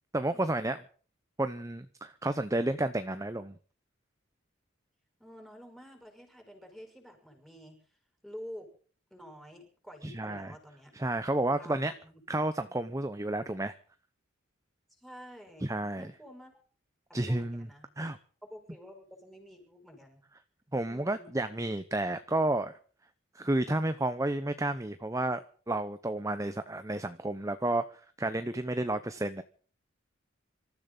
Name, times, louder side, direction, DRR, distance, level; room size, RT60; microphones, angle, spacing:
voice 1, 0.1-0.8 1.4-3.5 10.0-10.5 10.9-11.9 12.3-13.7 15.6-16.1 17.1-17.7 18.0-18.2 20.7-22.7 23.3-27.8 28.2-29.4, right 1 dB, 15° right, 11 dB, 0.8 m, -31 dB
voice 2, 5.2-8.7 9.1-10.9 11.6-12.2 14.9-15.7 16.0-16.6 17.3-20.2 20.9-21.4, equal, ahead, 4 dB, 5.9 m, -49 dB
26.0 x 14.0 x 3.9 m, 0.42 s
head